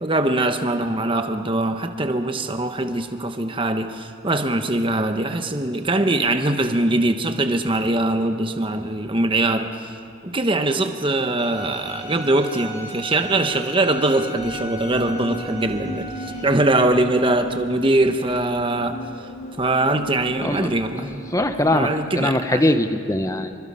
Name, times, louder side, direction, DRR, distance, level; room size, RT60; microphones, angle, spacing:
voice 1, 0.0-9.9 10.2-16.1 16.4-19.0 19.6-21.1 21.7-22.6, right 2 dB, 25° right, 7 dB, 1.1 m, -22 dB
Bowed string instrument, 11.4-16.4, right 1 dB, 30° left, 6.6 m, -36 dB
sound 1, 14.4-22.0, equal, 70° left, 3.1 m, -37 dB
voice 2, 20.4-21.9 22.2-23.6, left 1 dB, 15° left, 8 dB, 0.9 m, -22 dB
26.0 x 24.0 x 5.6 m, 2.4 s
head